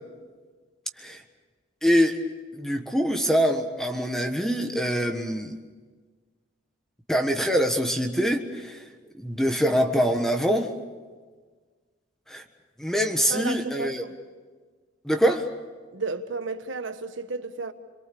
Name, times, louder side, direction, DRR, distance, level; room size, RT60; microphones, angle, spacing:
voice 1, 1.8-2.2 2.5-5.6 7.1-8.8 9.2-10.7 12.3-12.4 12.8-14.0 15.0-15.5, equal, ahead, 1.4 m, -24 dB
voice 2, 13.3-14.1 15.9-17.7, right 3 dB, 70° right, 1.3 m, -33 dB
27.5 x 22.5 x 7.0 m
head